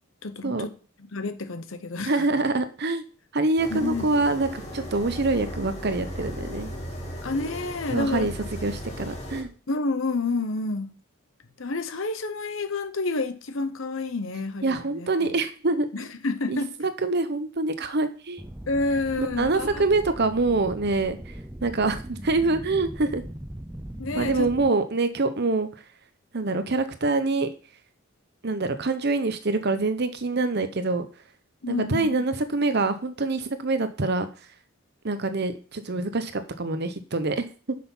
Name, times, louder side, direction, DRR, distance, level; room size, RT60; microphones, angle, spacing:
voice 1, 0.2-0.7 1.1-2.3 3.7-4.1 7.2-8.3 9.7-10.9 11.6-15.3 15.9-16.7 18.7-19.9 24.0-24.5 31.6-32.2, left 3 dB, 70° left, 0.9 m, -29 dB
voice 2, 2.0-3.0 3.3-6.7 7.9-8.3 8.6-9.5 14.6-15.9 16.5-18.4 19.2-21.3 21.6-23.2 24.1-25.7 26.3-27.5 28.4-31.1 31.7-34.3 35.0-37.8, right 3 dB, 55° right, 0.9 m, -25 dB
sound 1, 3.6-9.4, equal, 30° left, 2.6 m, -36 dB
sound 2, 18.4-24.7, right 1 dB, 10° right, 0.5 m, -39 dB
6.5 x 6.0 x 5.6 m
head